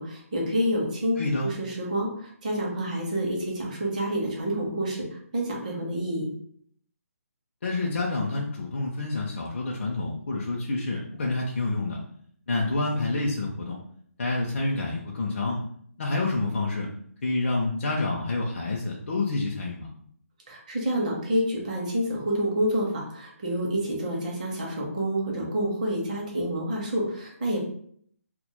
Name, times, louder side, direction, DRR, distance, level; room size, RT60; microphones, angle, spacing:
voice 1, 0.0-6.3 20.5-27.6, equal, 30° right, -2 dB, 0.5 m, -28 dB
voice 2, 1.2-1.5 7.6-12.0 12.5-13.8 14.2-15.6 16.0-16.9 17.2-19.9, left 2 dB, 50° left, -2 dB, 0.4 m, -28 dB
2.1 x 2.0 x 2.9 m, 0.63 s
hypercardioid pair, 175°, 8 cm